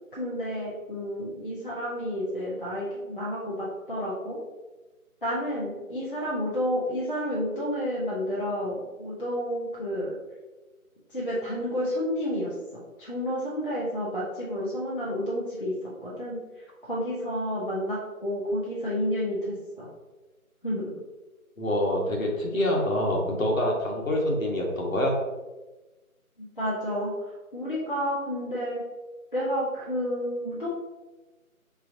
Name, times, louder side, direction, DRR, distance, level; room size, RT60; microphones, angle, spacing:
voice 1, 0.1-4.4 5.2-10.2 11.1-16.4 16.8-19.9 20.6-20.9 26.4-27.1 27.5-28.8 29.3-30.7, equal, 40° left, -6 dB, 0.6 m, -30 dB
voice 2, 21.6-25.2, left 1 dB, 65° left, -1 dB, 1.1 m, -26 dB
3.8 x 3.0 x 2.6 m, 1.2 s
figure-of-eight pair, 165°, 43 cm